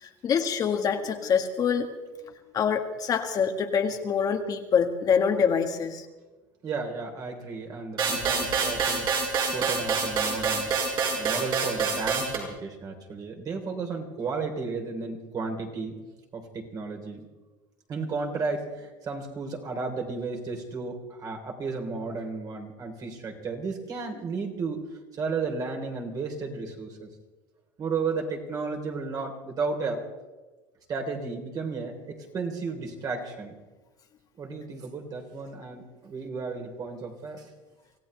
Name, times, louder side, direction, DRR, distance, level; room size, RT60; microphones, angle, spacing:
voice 1, 0.0-1.9 2.5-6.0, left 6 dB, 45° left, 4 dB, 1.6 m, -25 dB
voice 2, 6.6-9.1 9.5-10.7 11.2-16.0 16.3-17.3 17.9-24.8 25.2-27.1 27.8-30.0 30.9-33.6 34.4-37.5, right 4 dB, 40° right, 2 dB, 3.5 m, -33 dB
sound 1, 8.0-12.4, right 5 dB, 55° right, 6.8 m, -26 dB
25.5 x 15.5 x 3.3 m, 1.2 s
supercardioid pair, 100°, 9 cm